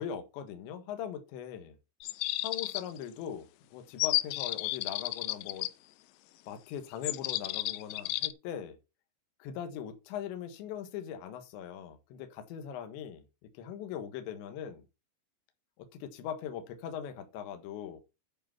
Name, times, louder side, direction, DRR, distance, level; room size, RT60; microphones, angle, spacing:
voice 1, 0.0-1.8 2.4-5.7 6.5-8.8 9.4-13.2 13.5-14.8 15.8-18.0, left 9 dB, 70° left, 3.5 m, -40 dB
sound 1, 2.0-3.0 4.0-5.7 7.0-8.3, left 18 dB, 85° left, 2.5 m, -32 dB
11.0 x 4.9 x 5.9 m
omnidirectional pair, 5.8 m